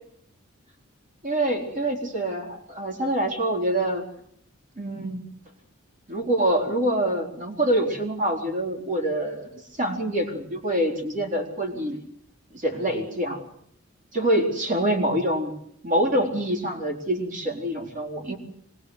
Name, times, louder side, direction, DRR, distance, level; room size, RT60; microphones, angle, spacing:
voice 1, 1.2-4.0 4.8-5.3 6.1-12.0 12.5-13.4 14.1-15.5 15.8-18.4, right 1 dB, 40° right, 2 dB, 4.4 m, -25 dB
25.0 x 21.0 x 8.2 m, 0.68 s
head